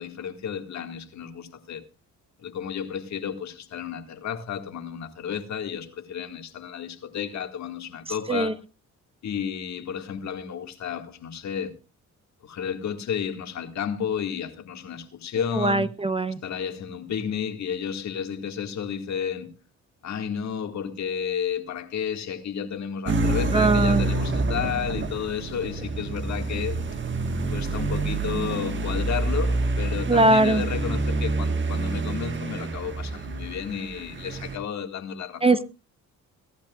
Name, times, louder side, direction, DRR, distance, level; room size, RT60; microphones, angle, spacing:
voice 1, 0.0-1.8 2.4-8.6 9.2-11.7 12.4-15.9 16.4-19.5 20.0-26.8 27.5-35.4, left 8 dB, 65° left, 2.0 m, -32 dB
voice 2, 15.5-16.4 23.5-24.0 30.1-30.6 35.4-35.6, right 2 dB, 20° right, 0.8 m, -20 dB
sound 1, 23.1-34.6, right 3 dB, 40° right, 1.6 m, -27 dB
23.0 x 12.0 x 2.4 m
cardioid pair, 90°, 30 cm